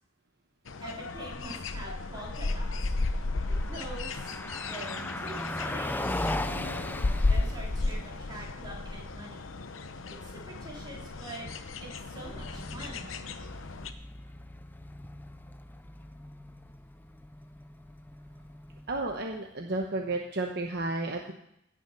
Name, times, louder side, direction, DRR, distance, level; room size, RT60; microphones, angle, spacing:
sound 1, 0.7-13.9, left 3 dB, 90° left, 0.8 m, -34 dB
voice 1, 0.8-3.2 3.7-6.6 7.2-9.4 10.2-11.5 11.8-13.1, right 1 dB, 20° right, -3 dB, 3.4 m, -45 dB
Car passing by, 3.2-19.3, left 1 dB, 10° left, 0.4 m, -40 dB
voice 2, 18.9-21.3, right 2 dB, 55° right, 2 dB, 1.0 m, -32 dB
16.0 x 6.5 x 5.8 m, 0.78 s
head